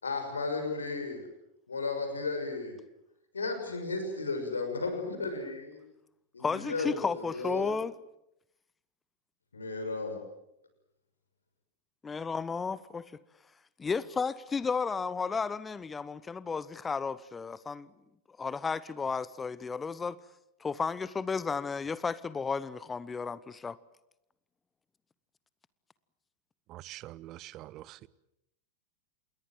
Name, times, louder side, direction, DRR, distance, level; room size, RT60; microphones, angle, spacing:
voice 1, 0.0-1.3 1.7-2.8 3.3-5.8 6.3-7.7 9.5-10.2, left 3 dB, 75° left, 6.3 m, -34 dB
voice 2, 6.4-7.9 12.0-13.1 13.8-17.9 18.4-20.2 20.6-23.8, left 5 dB, 15° left, 0.9 m, -33 dB
voice 3, 26.7-28.1, right 15 dB, 35° right, 0.9 m, -45 dB
27.5 x 21.5 x 7.8 m
figure-of-eight pair, 90°, 0 cm